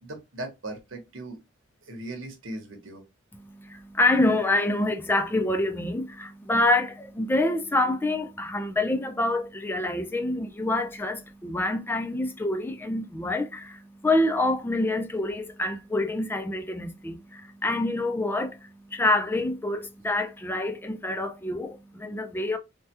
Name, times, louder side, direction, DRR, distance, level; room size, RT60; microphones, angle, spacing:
voice 1, 0.0-1.4 1.8-3.0, right 2 dB, 80° right, 0.9 m, -38 dB
voice 2, 3.4-22.6, left 2 dB, 10° left, 0.3 m, -26 dB
3.3 x 2.2 x 2.8 m
head